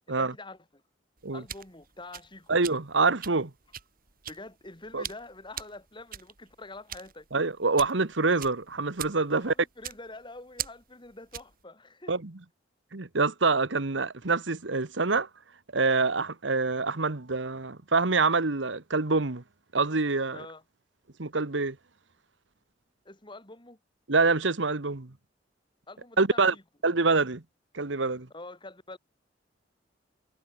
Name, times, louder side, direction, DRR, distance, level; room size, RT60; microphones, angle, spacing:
voice 1, 0.1-0.8 1.3-2.6 4.3-7.3 9.3-12.2 20.3-20.6 23.1-23.8 25.9-26.6 28.3-29.0, left 2 dB, 25° left, 3.4 m, -46 dB
sound 1, 1.2-11.6, right 10 dB, 50° right, 3.7 m, -42 dB
voice 2, 2.5-3.5 4.9-5.0 7.3-9.5 12.1-12.3 12.9-15.3 15.7-19.4 19.7-20.4 21.2-21.8 24.1-25.1 26.2-26.5 26.8-27.4 27.7-28.3, right 3 dB, 75° right, 1.4 m, -26 dB
head